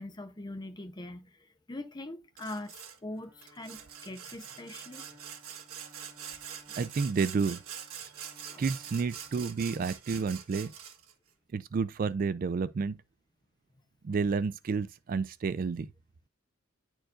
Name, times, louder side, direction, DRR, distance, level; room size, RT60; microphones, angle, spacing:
voice 1, 0.0-1.4 1.7-2.8 3.0-5.0 8.5-8.6, left 1 dB, 20° left, 0.7 m, -42 dB
Sawing, 2.4-3.0 3.4-11.1, right 8 dB, 80° right, 1.5 m, -44 dB
Bowed string instrument, 3.1-10.2, equal, 20° right, 3.4 m, -60 dB
voice 2, 6.8-7.6 8.6-10.7 11.5-13.0 14.0-15.9, right 5 dB, 40° right, 0.3 m, -30 dB
10.0 x 4.5 x 2.4 m
head